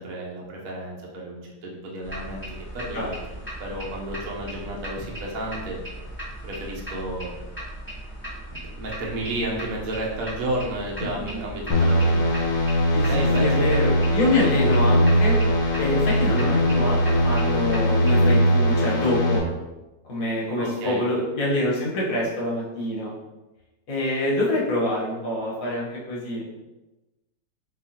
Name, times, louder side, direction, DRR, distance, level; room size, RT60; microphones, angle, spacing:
voice 1, 0.0-2.4 2.7-3.1 3.6-5.8 6.4-7.3 8.5-12.5 13.1-13.7 20.6-21.0, right 1 dB, 60° right, -2 dB, 1.2 m, -32 dB
sound 1, 2.0-18.3, right 1 dB, 10° left, 1.2 m, -38 dB
voice 2, 11.0-11.5 12.9-15.4 15.8-19.4 20.0-23.1 23.9-26.5, left 1 dB, 55° left, -4 dB, 1.5 m, -26 dB
sound 2, 11.7-19.4, equal, 75° left, 1.7 m, -20 dB
4.4 x 3.9 x 2.8 m, 1.1 s
omnidirectional pair, 1.9 m